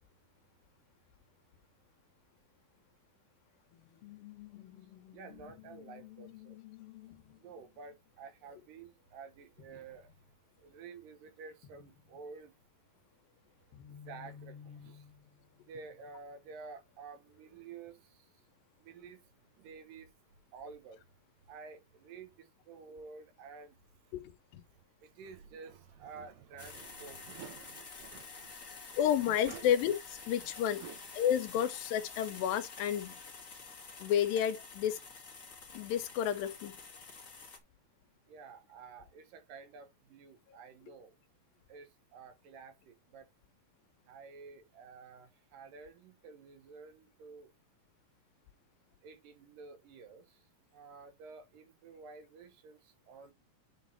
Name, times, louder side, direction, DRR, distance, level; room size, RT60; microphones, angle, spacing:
sound 1, 3.7-9.3 9.6-10.3 10.6-10.7 11.6-12.4 13.2-16.5 17.3-17.7, left 10 dB, 55° left, 1.8 m, -55 dB
voice 1, 5.1-6.6 7.4-10.1 10.6-12.5 13.9-15.1 15.7-18.3 18.8-19.2 19.5-20.1 20.5-21.0 21.5-23.8 25.0-29.7 30.8-31.0 38.3-41.1 41.7-43.3 44.1-47.5 49.0-50.4 50.7-53.3, right 5 dB, 75° right, 2.8 m, -51 dB
voice 2, 24.1-24.6 29.0-30.8 31.2-33.2 34.0-35.0 35.7-36.7, left 10 dB, 85° left, 2.6 m, -31 dB
sound 2, 26.6-37.6, left 4 dB, 35° left, 1.4 m, -49 dB
9.7 x 4.0 x 4.1 m
omnidirectional pair, 4.1 m